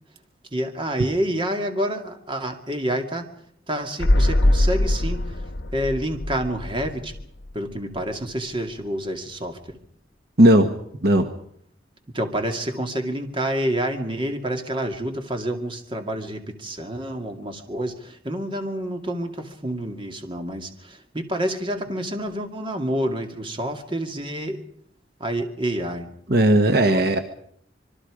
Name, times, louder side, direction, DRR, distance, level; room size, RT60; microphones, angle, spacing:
voice 1, 0.5-3.3 3.7-5.4 5.7-7.1 7.5-9.8 12.1-24.6 25.2-26.1 26.8-27.0, right 1 dB, 30° right, 4 dB, 2.4 m, -28 dB
sound 1, 4.0-7.7 8.0-8.1, left 1 dB, 80° left, 1.1 m, -22 dB
voice 2, 10.4-10.7 11.0-11.3 26.3-27.2, right 1 dB, 60° right, 7 dB, 1.3 m, -16 dB
25.5 x 23.0 x 5.0 m, 0.66 s
head